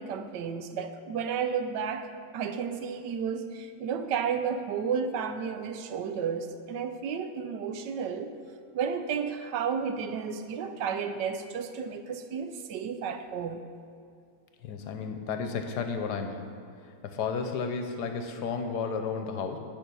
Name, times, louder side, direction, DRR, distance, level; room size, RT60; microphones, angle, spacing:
voice 1, 0.0-8.3 8.7-13.6, right 6 dB, 90° right, 9 dB, 1.3 m, -32 dB
voice 2, 14.6-16.5 17.0-19.6, left 5 dB, 75° left, 6 dB, 1.3 m, -32 dB
10.5 x 6.0 x 5.4 m, 2.3 s
omnidirectional pair, 1.8 m